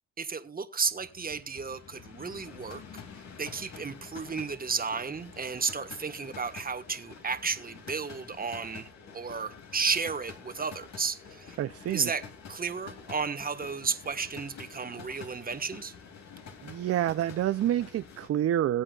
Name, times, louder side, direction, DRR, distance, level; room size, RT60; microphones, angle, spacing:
voice 1, 0.2-3.0 3.4-8.9 9.1-11.6 11.9-15.9, right 5 dB, 30° right, 1.5 m, -33 dB
sound 1, 0.9-18.3, left 5 dB, 65° left, 2.7 m, -48 dB
voice 2, 11.6-12.1 16.6-18.8, right 11 dB, 50° right, 0.5 m, -28 dB
20.5 x 8.6 x 2.4 m
cardioid pair, 90°, 30 cm